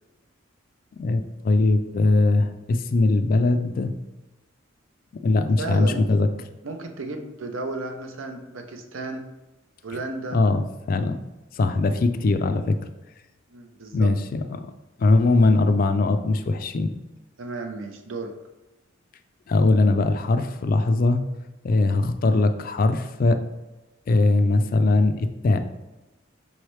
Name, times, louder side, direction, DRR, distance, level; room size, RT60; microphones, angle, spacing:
voice 1, 1.0-3.9 5.2-6.3 10.3-11.2 11.5-12.8 13.9-14.7 15.0-16.9 19.5-21.2 21.6-23.4 24.1-25.6, left 2 dB, 45° left, 9 dB, 0.3 m, -21 dB
voice 2, 5.6-6.0 6.6-9.3 9.8-10.4 13.5-14.1 17.4-18.3, right 2 dB, 85° right, 5 dB, 0.6 m, -33 dB
5.4 x 3.2 x 3.1 m, 1.0 s
head